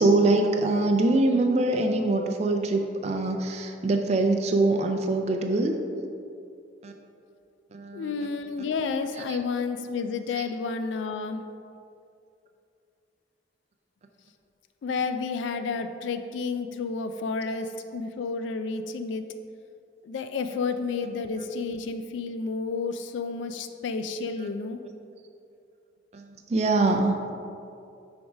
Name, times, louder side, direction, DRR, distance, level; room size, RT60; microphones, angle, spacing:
voice 1, 0.0-5.8 6.8-6.9 7.7-8.1 9.1-9.4 10.3-10.5 24.4-24.5 26.1-27.2, right 2 dB, 35° right, 4 dB, 0.3 m, -24 dB
voice 2, 7.9-11.4 14.8-19.2 20.0-24.8, left 4 dB, 85° left, 8 dB, 0.3 m, -31 dB
6.1 x 3.5 x 4.9 m, 2.5 s
head